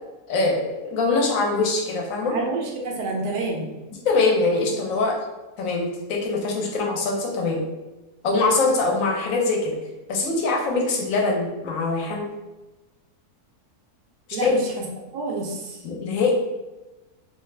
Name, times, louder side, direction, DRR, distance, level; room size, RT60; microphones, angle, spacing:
voice 1, 0.3-2.3 4.0-5.1 5.6-7.6 8.2-9.8 10.1-12.3 14.4-14.5 15.8-16.3, left 3 dB, 65° left, 0 dB, 1.0 m, -23 dB
voice 2, 2.3-3.7 14.3-14.9 15.1-15.8, right 3 dB, 90° right, 0 dB, 1.3 m, -28 dB
3.0 x 2.4 x 3.2 m, 1.1 s
omnidirectional pair, 1.7 m